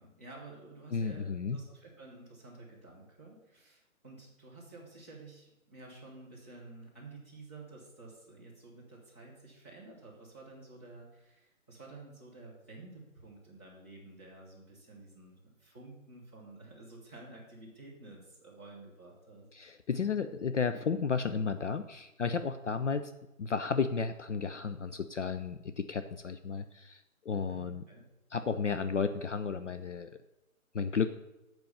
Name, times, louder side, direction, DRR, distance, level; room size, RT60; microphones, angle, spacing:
voice 1, 0.0-19.5 27.5-28.0, right 2 dB, 10° left, -10 dB, 0.9 m, -51 dB
voice 2, 0.9-1.6 19.5-23.1 23.4-27.8 28.3-30.1 30.7-31.1, left 5 dB, 60° left, 10 dB, 0.5 m, -33 dB
7.7 x 4.6 x 6.8 m, 0.97 s
hypercardioid pair, 180°, 42 cm